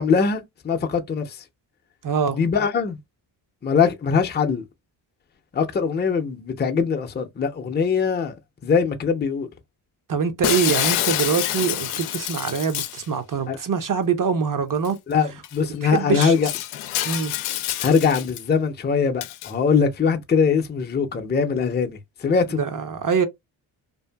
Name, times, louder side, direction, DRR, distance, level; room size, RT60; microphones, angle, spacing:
voice 1, 0.0-1.4 2.3-3.0 3.6-4.6 5.5-8.3 8.6-9.5 13.5-13.6 15.1-16.5 17.8-22.6, left 6 dB, 20° left, 0.6 m, -22 dB
voice 2, 2.0-2.4 10.1-15.0 15.6-16.3 17.0-17.3 22.6-23.3, right 6 dB, 40° right, 0.7 m, -24 dB
Shatter, 10.4-13.1 14.9-15.0 15.4-15.6 16.1-18.4 19.2-19.5, left 13 dB, 80° left, 0.5 m, -27 dB
2.7 x 2.4 x 2.2 m
supercardioid pair, 55°, 50 cm